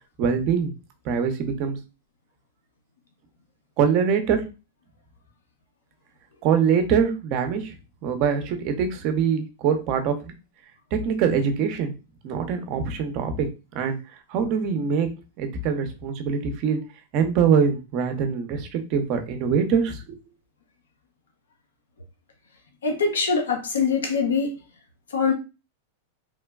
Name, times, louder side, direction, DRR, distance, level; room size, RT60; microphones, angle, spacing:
voice 1, 0.2-0.7 1.0-1.8 3.8-4.4 6.4-7.7 8.0-10.3 10.9-11.9 12.2-13.5 13.7-14.0 14.3-15.1 15.4-16.8 17.1-20.2, right 6 dB, 50° right, 6 dB, 0.6 m, -23 dB
voice 2, 22.8-24.5 25.1-25.3, left 5 dB, 85° left, 2 dB, 0.6 m, -23 dB
3.2 x 2.2 x 2.2 m, 0.29 s
hypercardioid pair, 115°, 0 cm